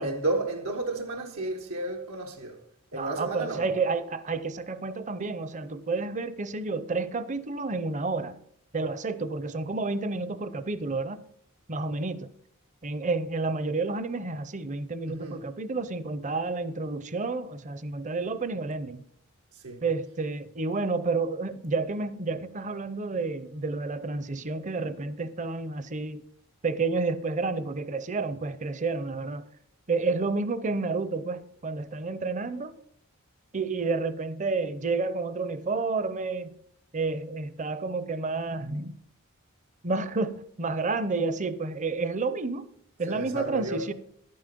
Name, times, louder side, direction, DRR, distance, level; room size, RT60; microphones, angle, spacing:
voice 1, 0.0-2.6 2.9-3.7 15.1-15.5 19.5-19.8 43.1-43.9, right 2 dB, 90° right, 1.3 m, -32 dB
voice 2, 2.9-8.4 8.7-11.2 11.7-12.3 12.8-19.0 19.8-26.2 26.6-29.5 29.9-32.7 33.5-36.5 36.9-38.9 39.8-42.7 43.0-43.9, right 3 dB, 35° right, 0.6 m, -30 dB
11.5 x 9.5 x 5.2 m
head